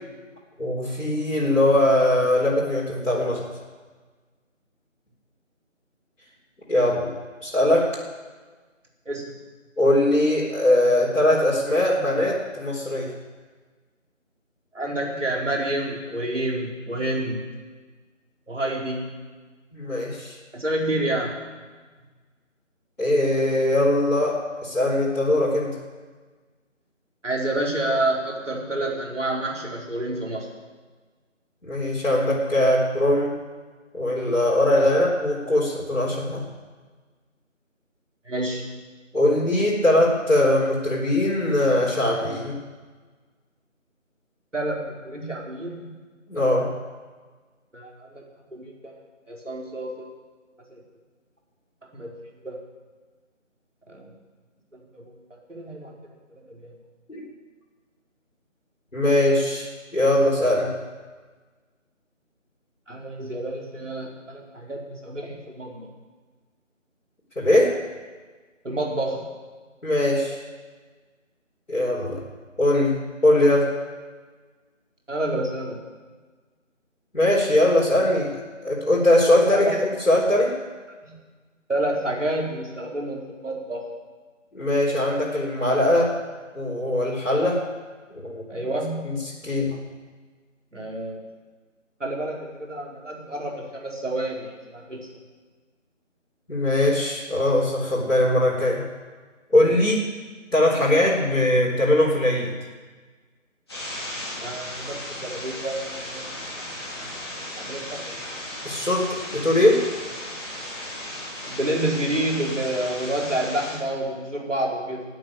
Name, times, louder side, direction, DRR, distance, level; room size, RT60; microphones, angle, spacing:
voice 1, 0.6-3.5 6.7-7.1 7.4-7.9 9.8-13.1 19.7-20.4 23.0-25.7 31.6-33.3 33.9-36.4 39.1-42.6 46.3-46.7 57.1-57.2 58.9-60.7 67.4-67.8 69.8-70.4 71.7-72.2 72.6-73.7 77.1-78.3 78.6-80.6 84.5-86.2 86.5-87.6 88.1-88.4 89.0-89.2 89.4-89.8 96.5-98.8 99.5-100.0 100.5-102.5 108.6-109.8, left 1 dB, 65° left, -6 dB, 4.2 m, -21 dB
voice 2, 14.7-17.4 18.5-19.0 20.5-21.4 27.2-30.5 34.7-34.8 38.3-38.7 44.5-45.9 47.7-48.2 48.5-48.9 49.3-50.1 50.7-50.8 51.9-52.1 52.4-52.6 53.9-54.1 54.9-55.0 55.5-56.0 56.3-56.7 62.9-65.9 68.6-69.3 75.1-75.8 79.5-79.7 81.0-81.2 81.7-83.8 88.5-89.1 90.7-91.2 92.0-95.0 104.4-106.2 107.6-108.4 111.5-115.0, right 1 dB, 65° right, -1 dB, 4.2 m, -29 dB
sound 1, 103.7-113.7, left 1 dB, 20° left, 3.3 m, -36 dB
14.0 x 9.1 x 8.9 m, 1.4 s
figure-of-eight pair, 165°, 39 cm